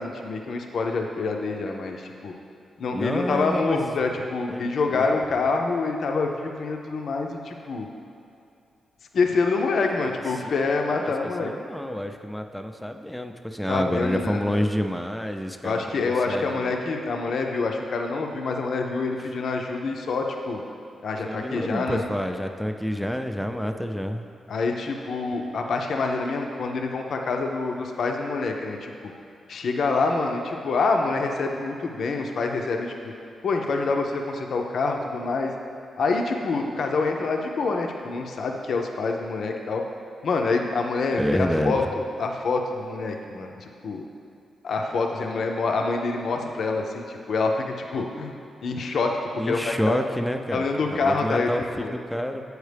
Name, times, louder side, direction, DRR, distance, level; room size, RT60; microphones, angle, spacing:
voice 1, 0.0-2.3 2.8-7.9 9.1-11.5 13.7-14.7 15.6-20.6 21.0-22.0 24.5-28.9 29.5-33.1 33.4-35.5 36.0-39.8 40.2-44.0 44.6-47.6 47.9-49.2 49.5-50.0 50.5-51.5 51.8-51.9, left 3 dB, 70° left, 2 dB, 0.5 m, -26 dB
voice 2, 2.9-4.0 4.5-5.2 10.4-11.1 11.4-16.8 21.2-24.2 41.2-41.8 49.4-50.6 50.9-52.4, equal, 5° left, 5 dB, 0.5 m, -28 dB
7.9 x 4.7 x 3.3 m, 2.6 s
supercardioid pair, 45°, 0 cm